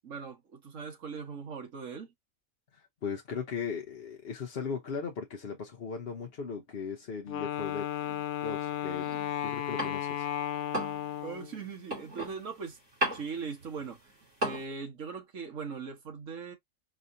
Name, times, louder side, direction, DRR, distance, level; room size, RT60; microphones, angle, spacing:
voice 1, 0.0-2.1 11.2-12.8 13.1-14.0 14.4-16.6, right 5 dB, 65° right, 1.7 m, -40 dB
voice 2, 2.7-7.9 8.4-9.1 9.4-10.3, left 6 dB, 50° left, 1.0 m, -37 dB
Wind instrument woodwind instrument, 7.3-11.6, left 11 dB, 85° left, 1.0 m, -34 dB
sound 1, 7.6-10.3 10.6-14.6, right 1 dB, 45° right, 2.8 m, -37 dB
5.0 x 3.0 x 2.6 m
omnidirectional pair, 1.4 m